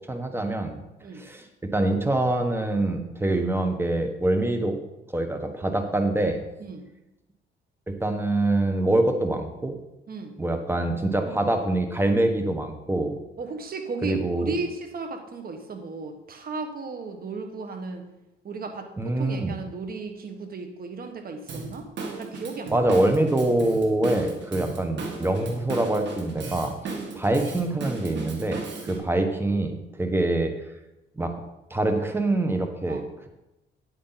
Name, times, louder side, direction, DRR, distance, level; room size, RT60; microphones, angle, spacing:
voice 1, 0.1-0.8 1.2-1.5 1.7-4.8 5.1-6.4 7.9-9.8 10.4-13.2 14.0-14.5 19.0-19.5 22.7-30.5 31.2-31.3 31.7-33.3, right 2 dB, 10° right, 6 dB, 1.3 m, -25 dB
voice 2, 13.4-18.1 18.4-21.9 22.2-22.9 28.9-29.3 32.9-33.1, right 4 dB, 50° right, 6 dB, 1.5 m, -35 dB
Drum kit / Drum, 21.5-29.0, right 4 dB, 65° right, 1.7 m, -36 dB
9.5 x 8.4 x 4.0 m, 0.94 s
cardioid pair, 90°, 20 cm